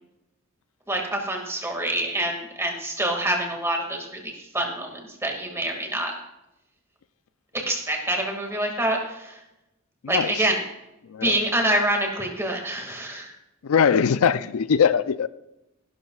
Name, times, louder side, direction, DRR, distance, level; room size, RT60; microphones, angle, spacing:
voice 1, 0.9-6.1 7.5-9.4 10.1-10.6 11.2-13.3, right 1 dB, 10° right, 2.1 m, -26 dB
voice 2, 13.6-15.3, left 7 dB, 85° left, 0.4 m, -21 dB
16.5 x 12.0 x 2.4 m
head